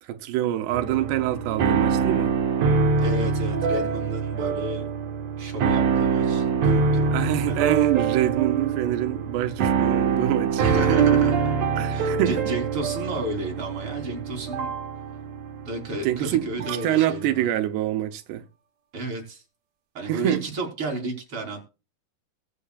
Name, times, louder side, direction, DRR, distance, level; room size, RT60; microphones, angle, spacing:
voice 1, 0.0-2.3 7.1-11.0 11.8-12.4 16.0-18.4 20.1-20.5, right 13 dB, 85° right, 2.9 m, -26 dB
sound 1, 0.7-17.0, right 5 dB, 60° right, 2.0 m, -24 dB
voice 2, 3.0-4.8 5.4-7.1 7.5-7.7 10.6-14.7 15.6-17.5 18.9-19.4 19.9-21.6, right 2 dB, 35° right, 4.2 m, -32 dB
21.5 x 8.3 x 2.4 m
omnidirectional pair, 4.6 m